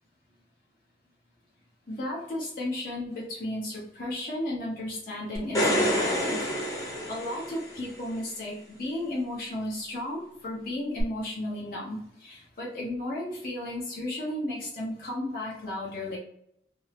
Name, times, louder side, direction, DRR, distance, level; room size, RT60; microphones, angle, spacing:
voice 1, 1.9-16.2, left 1 dB, 50° left, -6 dB, 0.8 m, -34 dB
sound 1, 5.4-7.9 11.0-11.1, equal, 20° left, 0.8 m, -27 dB
2.6 x 2.0 x 2.9 m, 0.71 s
head